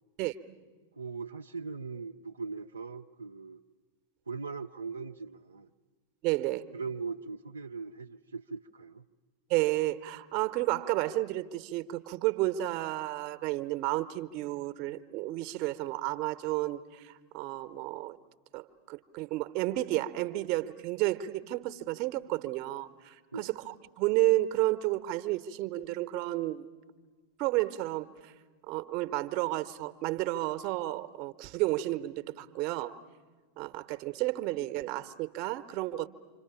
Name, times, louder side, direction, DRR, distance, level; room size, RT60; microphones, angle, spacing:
voice 1, 1.0-3.6 4.3-5.7 6.7-9.0 23.3-23.5, right 4 dB, 75° right, 0.7 m, -40 dB
voice 2, 6.2-6.6 9.5-18.2 18.5-26.7 27.4-28.3 28.7-33.0 33.6-36.1, right 17 dB, 40° right, 1.1 m, -31 dB
27.5 x 26.0 x 7.0 m
figure-of-eight pair, 90°, 0 cm